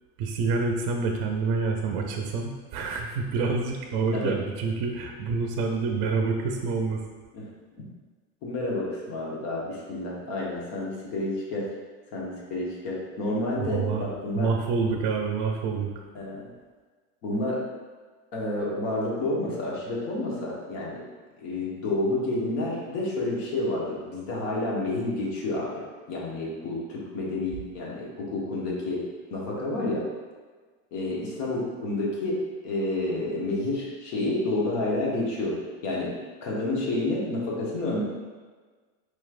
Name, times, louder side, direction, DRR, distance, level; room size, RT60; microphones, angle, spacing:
voice 1, 0.2-7.0 13.6-14.0 14.4-15.9, right 4 dB, 50° right, 2 dB, 0.5 m, -27 dB
voice 2, 8.4-11.7 12.1-14.5 16.1-16.5 17.2-17.6 18.3-21.0 21.4-29.0 29.3-30.0 30.9-35.6 35.8-36.1 36.4-38.0, left 2 dB, 65° left, -4 dB, 1.3 m, -29 dB
4.7 x 3.1 x 2.4 m, 1.4 s
supercardioid pair, 115°, 43 cm